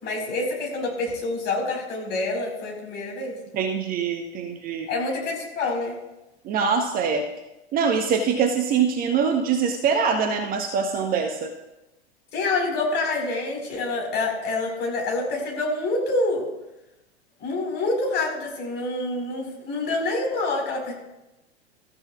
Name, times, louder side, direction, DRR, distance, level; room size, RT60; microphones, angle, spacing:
voice 1, 0.0-3.4 4.9-6.0 12.3-16.5 17.4-20.9, left 2 dB, 30° left, 0 dB, 4.7 m, -27 dB
voice 2, 3.5-4.9 6.4-7.3 7.7-11.5, right 6 dB, 25° right, 6 dB, 1.0 m, -23 dB
24.5 x 13.5 x 2.4 m, 0.96 s
figure-of-eight pair, 95°, 34 cm